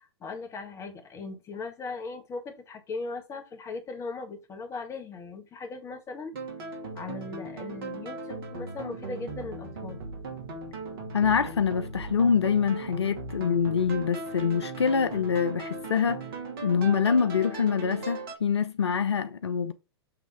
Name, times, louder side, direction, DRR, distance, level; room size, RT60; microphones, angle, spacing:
voice 1, 0.0-6.3 6.9-10.0, left 3 dB, 20° left, 1.7 m, -38 dB
sound 1, 6.3-18.3, right 3 dB, 60° right, 2.5 m, -38 dB
voice 2, 11.1-16.2 16.6-19.7, left 6 dB, 75° left, 0.7 m, -25 dB
7.8 x 3.5 x 4.9 m
figure-of-eight pair, 110°, 14 cm